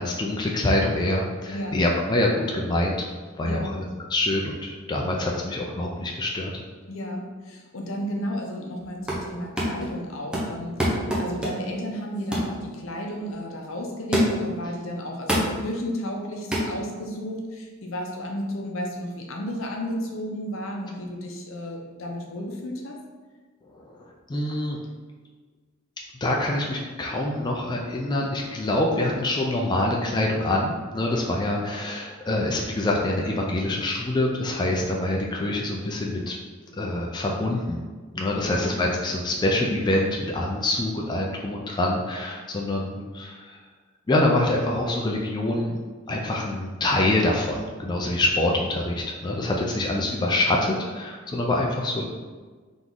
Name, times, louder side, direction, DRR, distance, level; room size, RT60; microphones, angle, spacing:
voice 1, 0.0-2.9 3.4-3.8 4.1-6.5 23.7-24.8 26.2-36.4 36.7-37.8 38.1-43.6 44.1-45.8 46.1-52.1, left 1 dB, 20° left, -1 dB, 0.4 m, -25 dB
voice 2, 1.5-1.8 3.4-3.8 6.9-23.0 38.4-38.7, equal, 70° left, 1 dB, 0.7 m, -33 dB
sound 1, 8.8-9.3 9.6-9.9 10.3-11.8 12.3-12.6 13.1-13.2 14.1-14.6 15.3-15.6 16.5-16.7, equal, 5° right, 0.7 m, -25 dB
3.7 x 3.0 x 3.8 m, 1.4 s
head